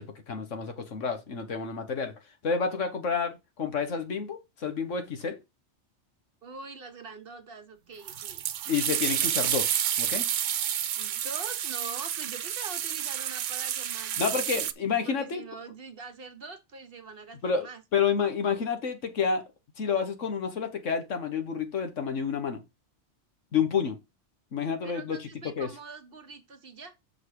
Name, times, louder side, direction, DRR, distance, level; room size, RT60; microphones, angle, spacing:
voice 1, 0.0-2.1 2.4-5.4 8.7-9.7 10.0-10.2 14.2-15.4 17.4-17.7 17.9-19.5 19.8-22.6 23.5-24.0 24.5-25.7, left 6 dB, 85° left, 1.7 m, -29 dB
voice 2, 6.4-8.4 11.0-14.4 15.0-17.8 24.8-26.9, right 4 dB, 50° right, 1.2 m, -44 dB
sound 1, 8.1-14.7, right 10 dB, 85° right, 1.0 m, -30 dB
6.6 x 4.9 x 4.9 m
omnidirectional pair, 1.2 m